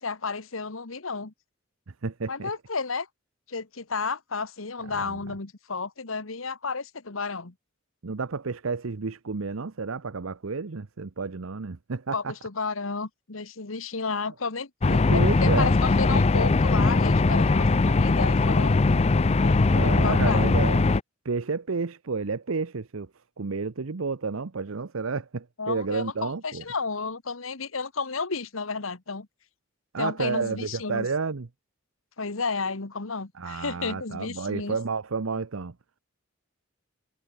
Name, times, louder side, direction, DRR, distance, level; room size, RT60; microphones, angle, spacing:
voice 1, 0.0-1.3 2.3-3.1 3.5-7.5 12.1-14.7 15.1-18.8 19.4-20.5 25.6-29.3 30.0-31.1 32.2-34.8, left 4 dB, 85° left, 1.5 m, -32 dB
voice 2, 2.0-2.5 4.9-5.2 8.0-12.3 14.9-15.7 19.7-20.8 21.2-23.1 23.4-26.6 29.9-31.5 33.4-35.7, right 4 dB, 90° right, 0.8 m, -31 dB
sound 1, 14.8-21.0, left 3 dB, 30° left, 0.5 m, -20 dB
head